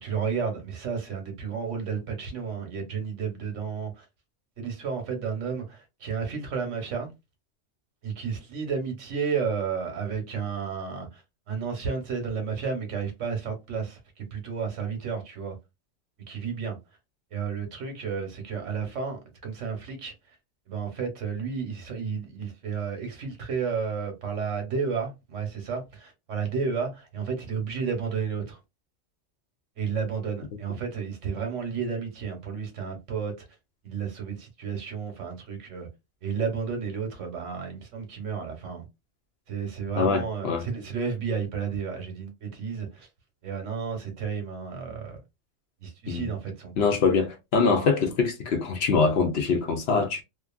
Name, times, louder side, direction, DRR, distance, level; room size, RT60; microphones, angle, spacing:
voice 1, 0.0-4.0 4.6-7.1 8.0-11.2 11.5-15.6 16.3-16.8 17.3-20.1 20.7-28.6 29.8-33.3 33.8-35.9 36.2-38.9 39.5-43.1 43.4-45.2 45.8-46.7, right 6 dB, 80° right, 1.3 m, -32 dB
voice 2, 40.0-40.7 46.1-46.3 46.8-50.2, left 4 dB, 65° left, 0.8 m, -24 dB
2.8 x 2.4 x 2.3 m
omnidirectional pair, 1.2 m